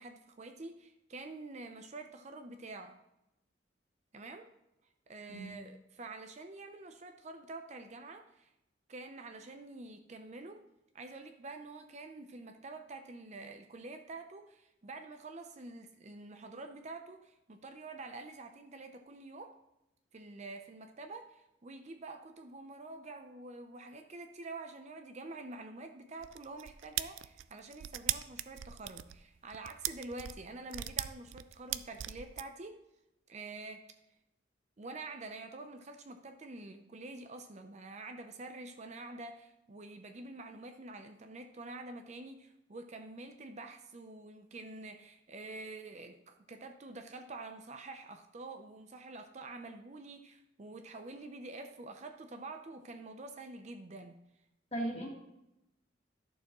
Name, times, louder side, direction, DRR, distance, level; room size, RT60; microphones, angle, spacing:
voice 1, 0.0-3.0 4.1-4.5 5.1-8.5 8.9-10.6 10.9-19.6 20.1-32.8 33.3-33.8 34.8-54.2, right 2 dB, 35° right, 6 dB, 0.6 m, -47 dB
sound 1, 26.2-32.5, right 13 dB, 85° right, 0.4 m, -38 dB
voice 2, 54.7-55.1, right 1 dB, 35° left, -1 dB, 2.0 m, -36 dB
11.5 x 6.9 x 3.0 m, 0.87 s
head